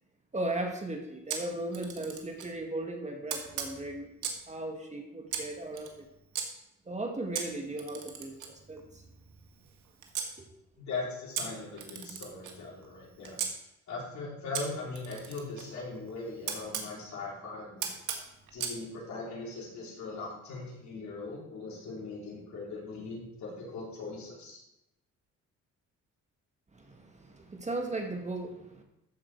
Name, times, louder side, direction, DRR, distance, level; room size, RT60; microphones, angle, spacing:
voice 1, 0.3-4.1 4.5-6.1 6.9-9.0 10.4-10.5 26.7-28.8, right 2 dB, 25° right, 2 dB, 1.9 m, -37 dB
Camera, 1.3-2.5 3.3-4.5 5.3-6.5 7.3-10.3 11.3-13.5 14.5-16.9 17.8-18.8, right 7 dB, 75° right, 1.8 m, -38 dB
voice 2, 10.8-13.4 13.9-17.9 18.5-24.6, left 3 dB, 65° left, -4 dB, 4.5 m, -40 dB
13.5 x 5.8 x 4.7 m, 0.86 s
cardioid pair, 90°, 30 cm